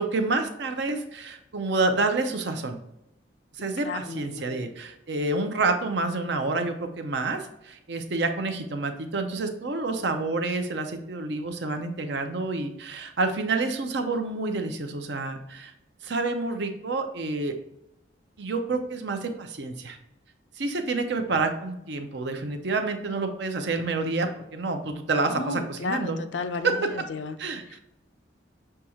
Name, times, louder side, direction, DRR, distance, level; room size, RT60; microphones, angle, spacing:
voice 1, 0.0-2.8 3.6-15.7 16.0-17.6 18.4-20.0 20.6-26.2 26.6-27.0 27.4-27.8, right 3 dB, 65° right, 6 dB, 0.6 m, -28 dB
voice 2, 3.8-4.7 25.2-27.3, left 3 dB, 75° left, 9 dB, 0.4 m, -33 dB
6.4 x 2.3 x 2.9 m, 0.84 s
head